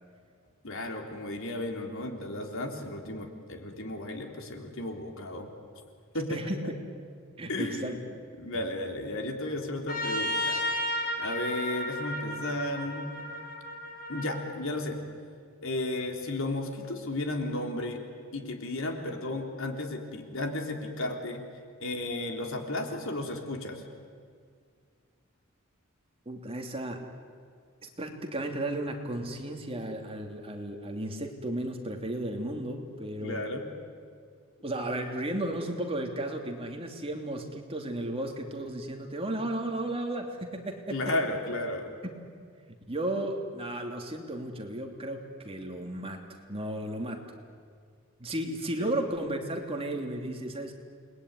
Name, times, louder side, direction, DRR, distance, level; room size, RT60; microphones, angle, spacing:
voice 1, 0.6-5.5 6.1-6.7 7.5-8.0 8.4-10.6 11.2-13.1 14.1-15.0 15.6-18.0 18.3-21.4 21.8-23.8 33.2-33.7 40.9-41.9 48.8-48.9, left 1 dB, 65° left, 3 dB, 3.6 m, -34 dB
voice 2, 7.4-8.0 26.3-27.1 27.8-33.5 34.6-41.0 42.9-46.2 46.5-47.2 48.2-50.7, right 1 dB, 25° right, 3 dB, 3.0 m, -34 dB
Trumpet, 9.9-14.4, left 1 dB, 45° left, 5.3 m, -33 dB
29.0 x 21.0 x 9.7 m, 2.1 s
head